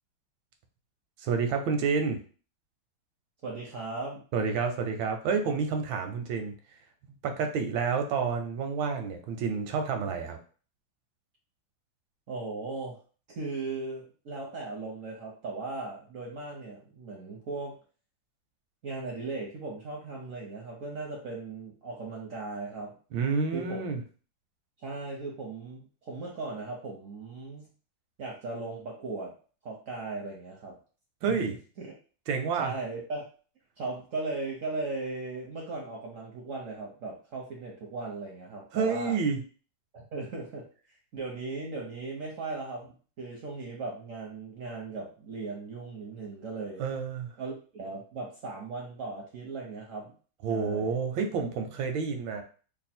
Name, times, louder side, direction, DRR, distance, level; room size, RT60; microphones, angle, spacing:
voice 1, 1.2-2.2 4.3-6.5 7.2-10.4 23.1-24.0 31.2-31.6 32.3-32.7 38.7-39.4 46.8-47.3 50.4-52.4, right 5 dB, 85° right, 5 dB, 1.4 m, -29 dB
voice 2, 3.4-4.2 12.3-13.0 13.3-17.8 18.8-23.0 23.5-23.9 24.8-27.7 28.2-29.3 29.6-30.8 31.3-31.4 31.8-31.9 32.6-33.2 33.8-39.2 39.9-40.7 41.1-42.9 43.2-46.8 47.4-50.1 50.5-50.9, right 3 dB, 65° right, -1 dB, 0.8 m, -37 dB
3.3 x 2.3 x 4.2 m, 0.39 s
omnidirectional pair, 2.1 m